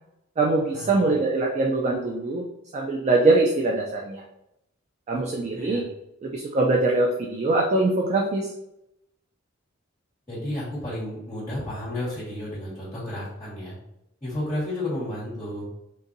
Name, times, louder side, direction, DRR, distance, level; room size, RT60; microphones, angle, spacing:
voice 1, 0.4-2.4 2.7-4.2 5.1-5.8 6.2-8.5, right 2 dB, 35° right, 0 dB, 0.4 m, -23 dB
voice 2, 5.1-5.8 10.3-13.8 14.2-15.7, left 1 dB, 15° left, -12 dB, 1.4 m, -32 dB
3.8 x 2.6 x 2.6 m, 0.84 s
head